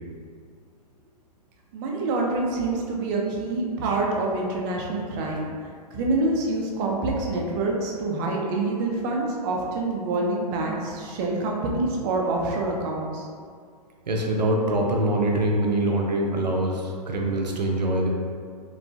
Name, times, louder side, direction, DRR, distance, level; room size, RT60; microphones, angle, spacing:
voice 1, 1.7-5.5 5.9-13.3, right 2 dB, 30° right, -1 dB, 0.4 m, -26 dB
voice 2, 14.1-18.1, right 1 dB, 80° right, 0 dB, 0.5 m, -24 dB
2.9 x 2.1 x 2.6 m, 2.1 s
figure-of-eight pair, 115°, 21 cm